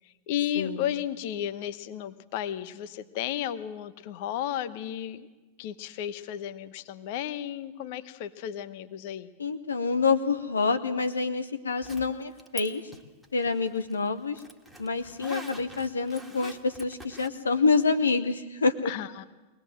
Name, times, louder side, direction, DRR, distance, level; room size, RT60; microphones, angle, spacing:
voice 1, 0.3-5.3 5.6-9.3 18.8-19.2, left 11 dB, 50° left, 12 dB, 1.1 m, -33 dB
voice 2, 9.4-12.8 13.3-14.4 14.8-18.9, left 4 dB, 75° left, 9 dB, 0.9 m, -27 dB
Zipper (clothing), 11.8-12.7 12.9-17.3, equal, ahead, 1.9 m, -44 dB
23.0 x 19.0 x 7.6 m, 1.2 s
figure-of-eight pair, 90°, 0 cm